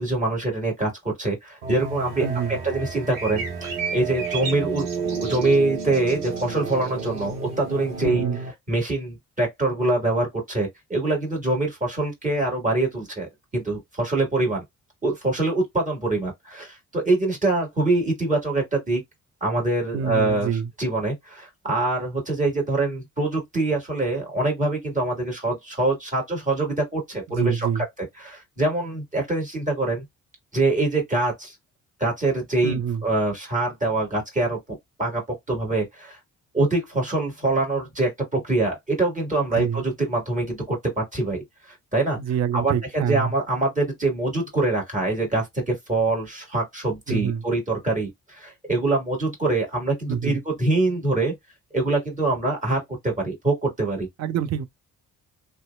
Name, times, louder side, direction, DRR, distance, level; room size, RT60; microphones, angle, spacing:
voice 1, 0.0-8.2 8.7-14.6 15.0-19.0 19.4-27.8 28.2-30.0 30.5-31.5 32.0-34.6 35.0-36.2 36.5-42.2 42.5-51.3 51.7-54.1, right 2 dB, 15° right, 1.6 m, -24 dB
sound 1, 1.6-8.5, right 5 dB, 85° right, 0.6 m, -32 dB
sound 2, 1.7-8.0, right 4 dB, 70° right, 1.0 m, -37 dB
voice 2, 2.2-2.6 8.0-8.4 19.9-20.7 27.3-27.8 32.6-33.0 39.5-39.8 42.2-43.3 47.1-47.4 50.1-50.4 54.2-54.7, right 8 dB, 40° right, 0.4 m, -26 dB
2.6 x 2.2 x 2.2 m
figure-of-eight pair, 40°, 45 cm